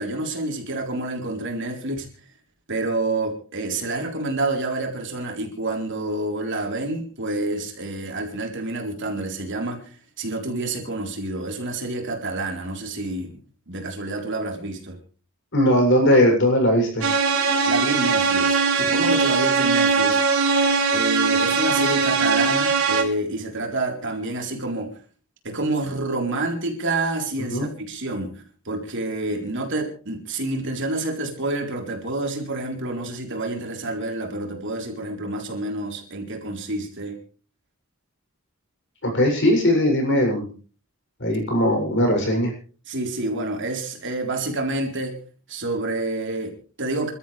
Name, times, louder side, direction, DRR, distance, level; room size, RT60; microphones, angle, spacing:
voice 1, 0.0-2.1 2.7-13.4 13.7-15.0 17.7-20.2 20.9-24.9 25.4-37.2 42.9-45.2 45.5-47.1, right 2 dB, 60° right, 2 dB, 4.0 m, -28 dB
voice 2, 15.5-17.1 27.5-27.7 39.0-40.5 41.2-42.5, equal, 60° left, 2 dB, 7.5 m, -19 dB
sound 1, 17.0-23.0, right 4 dB, 85° right, 4.1 m, -20 dB
28.5 x 13.0 x 3.4 m, 0.40 s
head